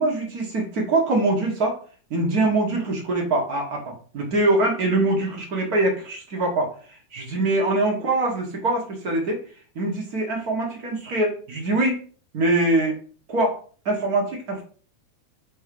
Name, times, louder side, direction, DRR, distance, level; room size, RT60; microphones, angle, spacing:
voice 1, 0.0-1.8 2.1-6.7 7.1-9.4 9.7-12.0 12.3-13.0 13.3-13.6 13.8-14.6, right 2 dB, 40° right, 0 dB, 1.4 m, -23 dB
5.5 x 3.9 x 5.3 m, 0.42 s
omnidirectional pair, 3.6 m